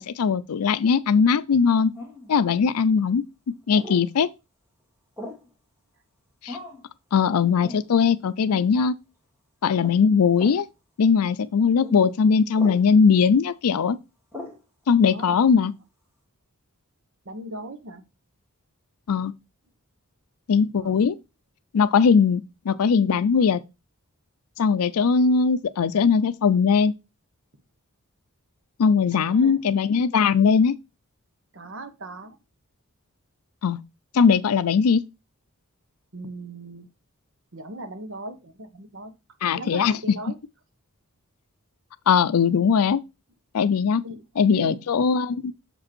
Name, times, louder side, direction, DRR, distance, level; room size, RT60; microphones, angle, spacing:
voice 1, 0.0-1.9 2.3-4.3 6.4-6.6 7.1-9.0 9.6-10.7 11.0-14.0 14.9-15.7 19.1-19.3 20.5-21.2 21.7-23.6 24.6-26.9 28.8-30.7 33.6-33.8 34.1-35.0 39.4-39.9 42.1-43.0 43.5-44.0 44.4-45.5, left 6 dB, 80° left, 0.4 m, -20 dB
sound 1, 1.9-2.3 3.7-4.0 5.2-5.5 6.5-6.8 7.6-7.8 8.5-8.7 9.8-10.0 10.3-10.6 11.8-12.0 12.5-12.8 14.3-14.6, left 1 dB, 10° right, 2.3 m, -38 dB
voice 2, 15.1-15.4 17.2-18.0 20.8-21.0 29.1-29.6 31.5-32.4 36.1-36.9 37.5-39.1 39.5-40.4 44.0-44.2 44.5-44.9, right 1 dB, 60° right, 1.1 m, -38 dB
6.9 x 5.2 x 4.3 m
head